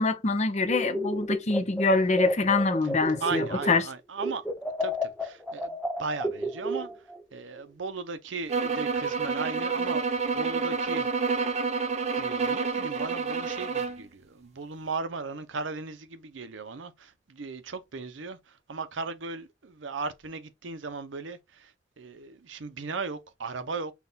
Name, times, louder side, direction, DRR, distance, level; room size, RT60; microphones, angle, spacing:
voice 1, 0.0-3.8, left 3 dB, 40° left, 0.7 m, -25 dB
sound 1, 0.7-3.9 4.2-7.2, equal, ahead, 0.5 m, -32 dB
voice 2, 3.2-4.4 4.8-6.9 7.3-10.0 10.3-11.4 12.2-21.7 22.0-23.9, right 4 dB, 80° right, 0.7 m, -37 dB
sound 2, 8.5-14.0, right 5 dB, 35° right, 0.7 m, -29 dB
5.8 x 2.4 x 3.9 m
head